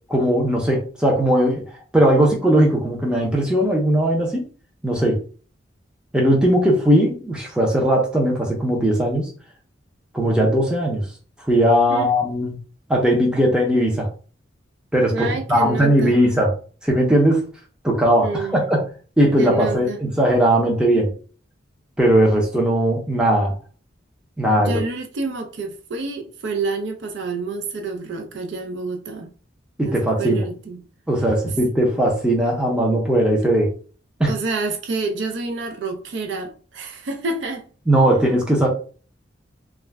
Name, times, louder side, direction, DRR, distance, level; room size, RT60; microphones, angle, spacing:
voice 1, 0.1-1.6 1.9-4.4 4.8-5.2 6.1-9.3 10.1-11.0 11.5-12.6 12.9-14.1 14.9-16.5 16.8-17.4 17.8-18.8 19.2-21.1 22.0-23.5 24.4-24.8 29.8-30.4 31.1-33.7 34.2-34.3 37.9-38.7, right 1 dB, 5° right, 0.6 m, -18 dB
voice 2, 15.1-16.2 18.2-18.7 19.4-20.0 24.6-29.3 29.8-30.8 34.3-37.7, right 3 dB, 65° right, 0.4 m, -28 dB
2.4 x 2.1 x 3.3 m
head